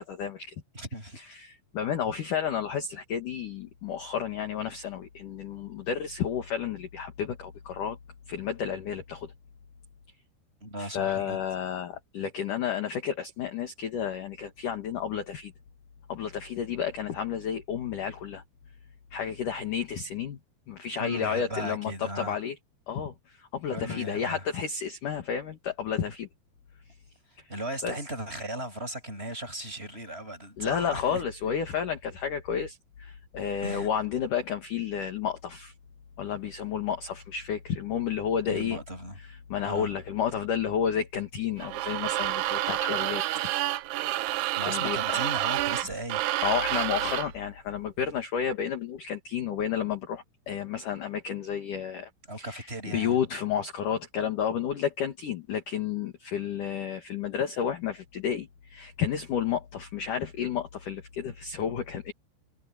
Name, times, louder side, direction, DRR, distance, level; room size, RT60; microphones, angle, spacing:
voice 1, 0.0-0.5 1.2-8.0 8.3-9.3 10.8-15.5 16.1-18.4 19.1-20.4 20.7-22.6 22.9-26.3 27.8-27.9 30.6-35.7 36.2-38.8 39.3-43.2 44.6-45.2 46.4-52.1 52.4-62.1, left 8 dB, 55° left, 2.8 m, -31 dB
voice 2, 0.7-1.2 10.6-11.4 21.0-22.4 23.7-24.4 27.3-31.2 33.6-33.9 38.4-39.2 39.6-39.9 44.6-46.4 52.3-53.2, right 1 dB, 10° right, 7.8 m, -37 dB
sound 1, 41.6-47.4, right 16 dB, 75° right, 2.4 m, -29 dB
omnidirectional pair, 5.6 m